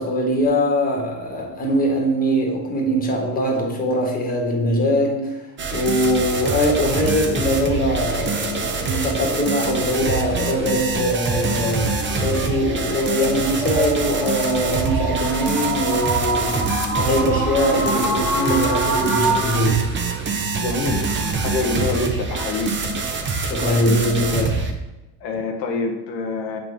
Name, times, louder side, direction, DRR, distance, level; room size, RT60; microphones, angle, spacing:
voice 1, 0.0-5.4 5.7-11.9 12.2-16.7 17.0-19.8 23.4-24.7, equal, 20° left, 0 dB, 1.5 m, -22 dB
sound 1, 5.6-24.7, right 4 dB, 25° right, 0.7 m, -25 dB
sound 2, 7.7-19.6, right 2 dB, ahead, 1.7 m, -28 dB
voice 2, 20.6-21.1 21.4-22.7 25.2-26.6, left 3 dB, 85° left, 3 dB, 1.0 m, -25 dB
7.3 x 3.9 x 3.4 m, 1.0 s
supercardioid pair, 100°, 49 cm